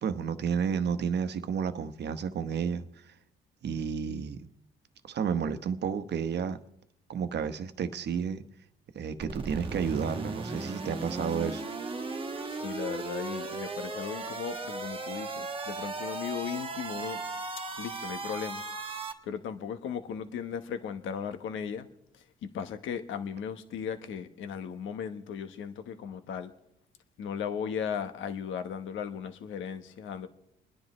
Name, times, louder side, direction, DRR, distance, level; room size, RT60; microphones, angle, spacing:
voice 1, 0.0-3.1 3.6-4.5 5.0-6.6 7.1-8.4 8.9-11.6, right 7 dB, 60° right, 1.1 m, -31 dB
sound 1, 9.2-19.1, right 3 dB, 25° right, 1.4 m, -37 dB
voice 2, 12.5-17.2 17.8-18.6 19.2-21.9 22.1-26.5 27.2-30.3, left 7 dB, 80° left, 1.2 m, -36 dB
30.0 x 10.5 x 3.2 m
cardioid pair, 90°, 20 cm